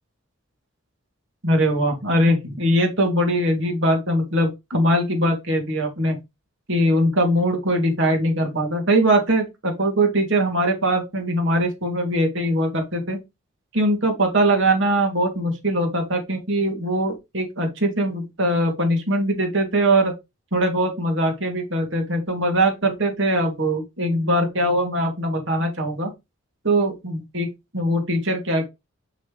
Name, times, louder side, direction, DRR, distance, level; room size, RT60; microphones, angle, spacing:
voice 1, 1.4-6.2 6.7-13.2 13.7-20.1 20.5-26.1 26.6-27.5 27.7-28.7, right 1 dB, 60° right, 2 dB, 3.2 m, -21 dB
6.5 x 6.3 x 3.4 m, 0.22 s
head